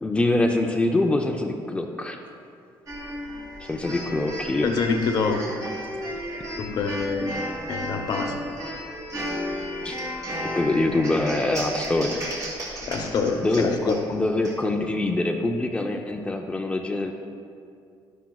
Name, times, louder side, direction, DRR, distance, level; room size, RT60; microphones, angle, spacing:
voice 1, 0.0-2.2 3.6-4.7 9.8-10.0 10.6-12.2 13.4-17.1, left 2 dB, 15° left, 3 dB, 0.5 m, -24 dB
sound 1, 2.9-14.5, equal, 40° right, 2.2 m, -33 dB
voice 2, 4.6-5.8 6.6-7.3 7.7-8.3 12.8-14.0, left 4 dB, 55° left, 4 dB, 0.9 m, -26 dB
11.5 x 11.5 x 2.3 m, 2.4 s
cardioid pair, 130°, 9 cm